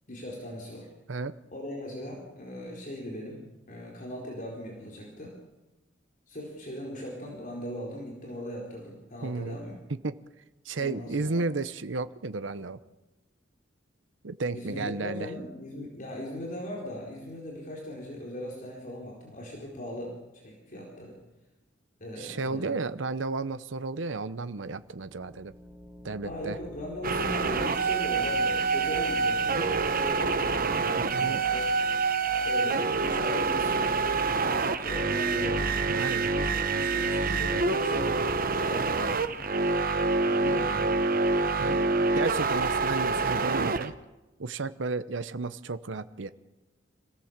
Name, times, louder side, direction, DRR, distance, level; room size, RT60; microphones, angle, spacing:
voice 1, 0.1-0.9 1.5-3.4 3.7-5.3 6.3-9.8 10.8-11.4 14.5-21.2 22.0-22.7 26.2-31.7 32.4-35.8 36.4-39.9 40.2-40.9 41.5-42.0, left 1 dB, 45° left, -2 dB, 4.5 m, -39 dB
voice 2, 9.2-9.6 10.0-10.2 10.6-12.8 14.2-15.3 22.2-25.5 26.0-26.6 31.1-31.4 35.9-36.3 40.4-40.5 41.6-41.8 42.2-44.0 44.4-46.3, right 3 dB, 75° right, 12 dB, 0.8 m, -33 dB
sound 1, 24.8-32.5, equal, 10° right, 1.4 m, -46 dB
sound 2, 27.0-43.9, right 4 dB, 50° right, 1.1 m, -26 dB
26.5 x 16.5 x 7.4 m, 1.0 s
head